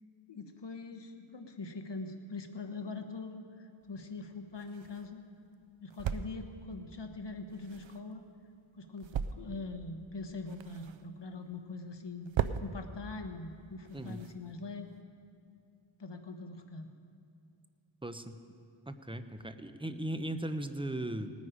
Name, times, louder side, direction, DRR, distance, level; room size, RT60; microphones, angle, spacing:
voice 1, 0.3-5.2 5.8-8.3 8.7-12.3 12.6-14.9 16.0-16.9, left 3 dB, 55° left, 6 dB, 1.2 m, -43 dB
sound 1, 3.8-15.0, right 8 dB, 70° right, 0.6 m, -41 dB
voice 2, 18.0-18.4 18.9-21.3, right 1 dB, 10° right, 9 dB, 0.7 m, -37 dB
18.5 x 9.5 x 5.0 m, 2.4 s
wide cardioid pair, 55°, 49 cm